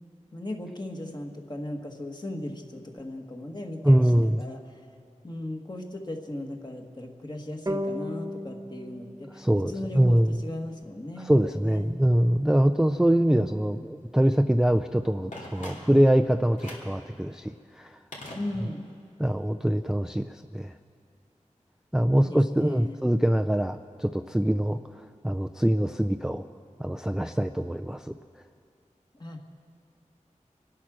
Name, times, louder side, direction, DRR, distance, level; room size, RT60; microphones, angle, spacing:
voice 1, 0.3-4.8 5.2-9.4 9.7-12.0 13.2-13.9 18.3-18.9 22.2-23.0 29.1-29.5, left 1 dB, 35° left, 2 dB, 1.7 m, -37 dB
voice 2, 3.8-4.4 9.3-10.4 11.2-18.0 19.2-20.7 21.9-26.5 26.8-28.2, right 1 dB, 5° right, 7 dB, 0.4 m, -24 dB
sound 1, 7.7-10.9, equal, 25° right, 0.8 m, -36 dB
Telephone, 15.3-16.2 16.6-17.0 18.1-19.0 19.3-19.4, left 1 dB, 75° left, 3.1 m, -42 dB
26.0 x 8.7 x 6.3 m, 2.3 s
wide cardioid pair, 60°, 13 cm